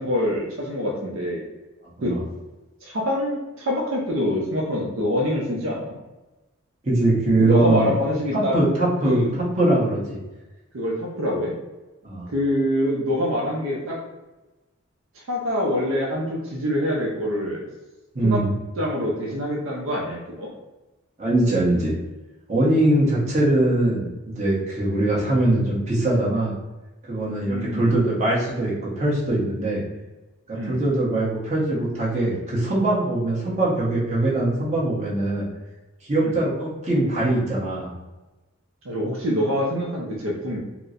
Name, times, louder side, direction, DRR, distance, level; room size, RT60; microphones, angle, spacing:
voice 1, 0.0-1.4 2.0-2.1 2.8-6.0 7.4-8.6 9.0-9.3 10.7-11.5 12.3-14.0 15.1-17.7 18.2-18.4 18.8-20.5 27.5-27.9 30.5-30.8 36.2-36.4 38.8-40.6, left 1 dB, 70° right, -3 dB, 0.6 m, -25 dB
voice 2, 6.8-7.9 8.3-10.2 12.0-12.3 18.1-18.5 21.2-21.9 22.5-26.6 27.1-29.8 30.5-35.5 36.0-37.9, right 1 dB, 30° right, -7 dB, 1.0 m, -22 dB
4.3 x 2.1 x 2.5 m, 1.1 s
head